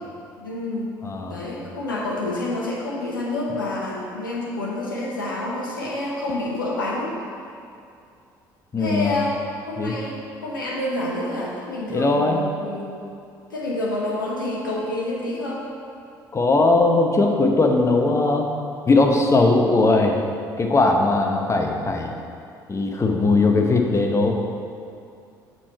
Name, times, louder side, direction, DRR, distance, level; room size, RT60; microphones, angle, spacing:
voice 1, 0.4-1.0 1.3-7.1 8.8-9.4 9.7-13.0 13.5-15.6, left 2 dB, 80° left, -4 dB, 0.8 m, -28 dB
voice 2, 1.0-1.5 8.7-9.2 9.8-10.0 11.9-12.4 16.3-18.5 18.9-20.2 20.6-22.1 22.7-24.3, left 3 dB, 25° left, 2 dB, 0.9 m, -19 dB
7.3 x 4.7 x 5.5 m, 2.5 s
figure-of-eight pair, 55°, 11 cm